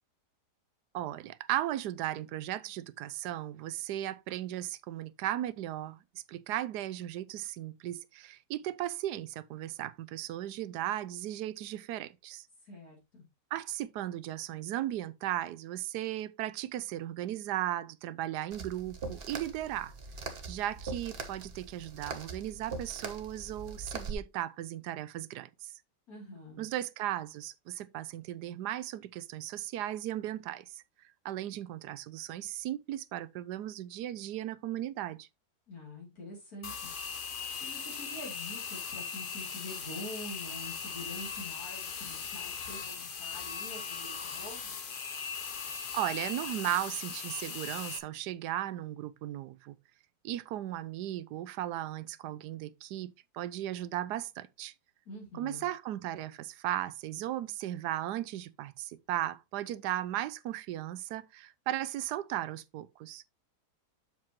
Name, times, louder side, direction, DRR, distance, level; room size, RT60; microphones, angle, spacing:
voice 1, 0.9-12.5 13.5-19.9 20.5-25.7 26.6-30.8 31.2-35.3 45.9-49.8 50.2-54.7 55.3-63.2, right 13 dB, 85° right, 1.2 m, -36 dB
voice 2, 12.6-13.2 26.1-26.7 35.7-36.9 37.6-44.7 55.0-55.7, left 1 dB, 65° left, 3.4 m, -46 dB
sound 1, 18.5-24.1, right 4 dB, 40° right, 1.3 m, -42 dB
sound 2, 36.6-48.0, left 6 dB, 45° left, 0.8 m, -39 dB
7.4 x 7.4 x 2.9 m
omnidirectional pair, 1.7 m